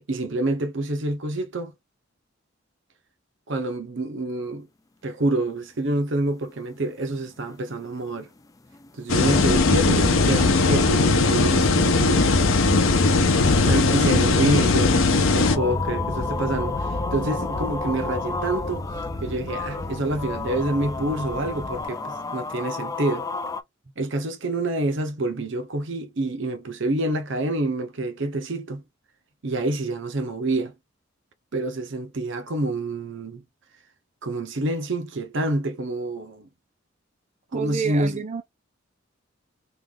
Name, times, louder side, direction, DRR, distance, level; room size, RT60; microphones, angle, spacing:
voice 1, 0.0-1.7 3.5-4.7 5.0-8.3 9.0-12.3 13.6-18.9 19.2-23.3 24.0-28.8 29.4-30.7 31.5-33.4 34.2-36.5 37.5-38.2, right 2 dB, 65° right, 0.8 m, -27 dB
sound 1, 6.5-6.8 7.1-7.2 7.5-23.6, left 4 dB, 15° left, 0.3 m, -34 dB
sound 2, 9.1-15.6, left 3 dB, 85° left, 0.7 m, -19 dB
sound 3, 9.2-21.9, left 1 dB, 40° left, 0.8 m, -30 dB
voice 2, 37.5-38.4, right 5 dB, 35° right, 0.6 m, -29 dB
3.2 x 2.4 x 3.6 m
head